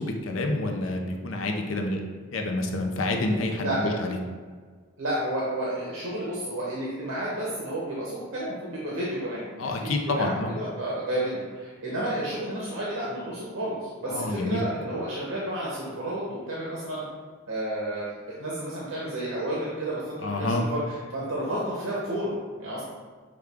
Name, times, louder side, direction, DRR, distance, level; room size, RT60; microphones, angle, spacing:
voice 1, 0.0-2.0 2.3-4.2 9.6-10.5 14.1-14.6 20.2-20.6, left 2 dB, 75° left, 3 dB, 0.6 m, -28 dB
voice 2, 3.6-4.0 5.0-17.0 17.5-20.0 20.3-20.8 21.1-22.8, right 1 dB, 80° right, -6 dB, 0.9 m, -31 dB
6.2 x 2.3 x 3.5 m, 1.5 s
head